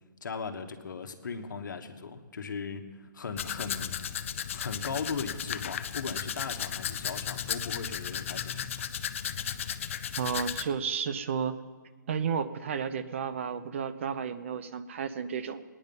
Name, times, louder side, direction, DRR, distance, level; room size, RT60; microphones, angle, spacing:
voice 1, 0.2-3.9 4.2-8.7, left 5 dB, 75° left, 6 dB, 1.3 m, -38 dB
Domestic sounds home sounds, 3.4-10.6, left 9 dB, 40° left, 0.5 m, -35 dB
voice 2, 10.2-11.6 12.1-15.6, right 7 dB, 40° right, 12 dB, 0.6 m, -32 dB
18.0 x 9.9 x 5.4 m, 1.4 s
hypercardioid pair, 165°, 10 cm